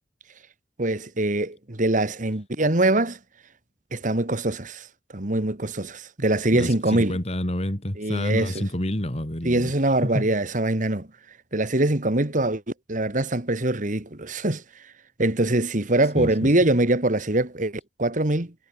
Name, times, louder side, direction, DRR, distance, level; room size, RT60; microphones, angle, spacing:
voice 1, 0.8-3.2 3.9-4.9 5.1-7.2 8.0-8.7 9.4-11.1 11.5-12.6 12.9-14.6 15.2-18.5, right 2 dB, 45° right, 2.0 m, -23 dB
voice 2, 6.5-9.7 10.0-10.3 16.2-16.5, left 1 dB, 35° left, 2.9 m, -28 dB
head